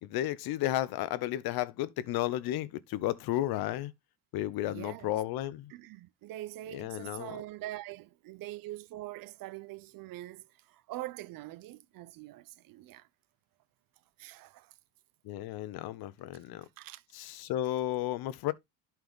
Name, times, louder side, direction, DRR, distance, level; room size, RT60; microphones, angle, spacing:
voice 1, 0.0-3.9 4.3-5.7 6.7-7.4 15.2-16.6 17.1-18.5, left 14 dB, 65° left, 1.1 m, -33 dB
voice 2, 4.7-5.2 5.7-13.1 14.2-14.7 16.8-17.0, right 15 dB, 55° right, 0.8 m, -44 dB
11.5 x 4.6 x 3.6 m
supercardioid pair, 100°, 40 cm